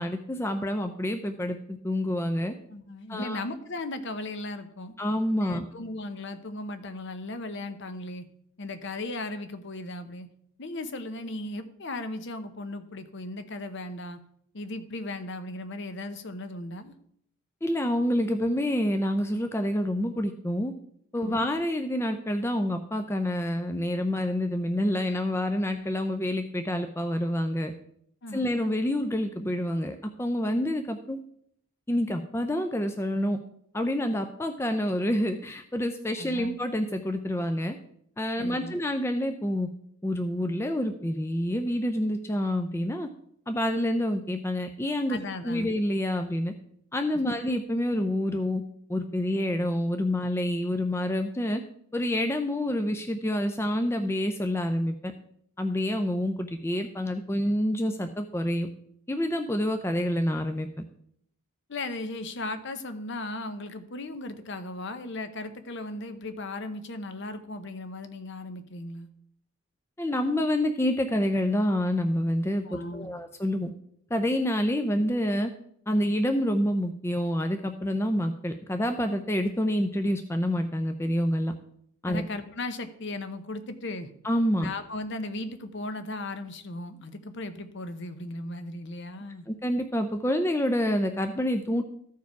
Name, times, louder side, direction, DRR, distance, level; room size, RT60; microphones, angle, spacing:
voice 1, 0.0-2.5 3.1-3.4 5.0-5.6 17.6-20.7 21.1-27.7 28.3-31.2 31.9-33.4 33.7-37.8 38.2-39.7 40.0-43.1 43.5-45.2 45.4-46.5 46.9-48.6 48.9-51.6 51.9-55.1 55.6-58.7 59.1-60.7 70.0-73.7 74.1-75.5 75.9-81.5 82.0-82.2 84.2-84.7 89.5-91.8, left 1 dB, 10° left, 7 dB, 0.4 m, -27 dB
voice 2, 2.7-4.9 5.4-8.2 8.6-10.3 10.6-14.2 14.5-16.9 21.2-21.5 28.2-28.5 36.2-36.6 38.4-38.8 45.1-45.7 47.2-47.3 61.7-69.1 72.6-73.2 82.1-84.1 84.6-89.5, left 2 dB, 55° left, 9 dB, 0.8 m, -36 dB
14.0 x 4.7 x 4.7 m, 0.69 s
head